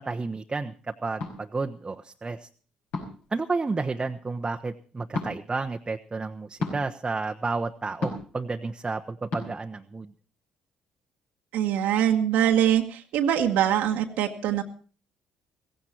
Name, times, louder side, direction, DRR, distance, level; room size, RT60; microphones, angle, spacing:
voice 1, 0.0-2.5 3.3-10.1, right 3 dB, 25° right, 4 dB, 1.0 m, -31 dB
sound 1, 1.2-1.4 2.9-3.3 5.1-5.3 6.6-6.8 8.0-8.3 9.3-9.4, left 3 dB, 70° left, 5.5 m, -31 dB
voice 2, 11.5-14.6, right 10 dB, 70° right, 3 dB, 1.4 m, -23 dB
16.5 x 16.0 x 4.4 m, 0.40 s
hypercardioid pair, 50°, 3 cm